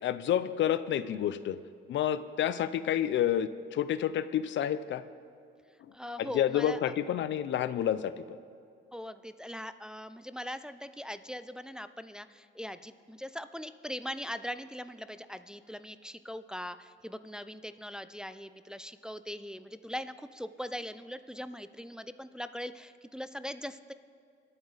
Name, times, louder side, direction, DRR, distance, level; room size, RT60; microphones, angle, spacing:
voice 1, 0.0-1.6 1.9-5.0 5.8-8.4, left 10 dB, 70° left, 14 dB, 0.6 m, -29 dB
voice 2, 5.9-6.9 8.9-23.9, equal, 5° right, 11 dB, 0.5 m, -41 dB
25.0 x 8.9 x 4.1 m, 2.3 s
cardioid pair, 90°, 20 cm